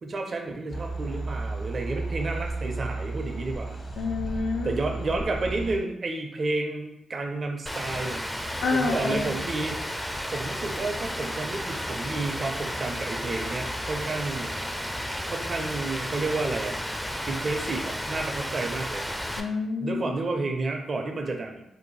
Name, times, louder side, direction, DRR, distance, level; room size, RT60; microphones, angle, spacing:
voice 1, 0.0-3.8 4.6-8.2 8.7-9.9 10.3-14.6 15.3-16.8 17.3-19.0 19.8-21.6, right 3 dB, 50° right, 3 dB, 0.5 m, -31 dB
sound 1, 0.7-5.8, right 2 dB, 50° left, 0.8 m, -33 dB
voice 2, 4.0-4.7 8.6-9.4 19.4-20.1, left 4 dB, 80° left, 3 dB, 0.4 m, -28 dB
Rain, 7.7-19.4, equal, 5° left, 0.4 m, -33 dB
2.6 x 2.2 x 3.2 m, 0.84 s
supercardioid pair, 50°, 0 cm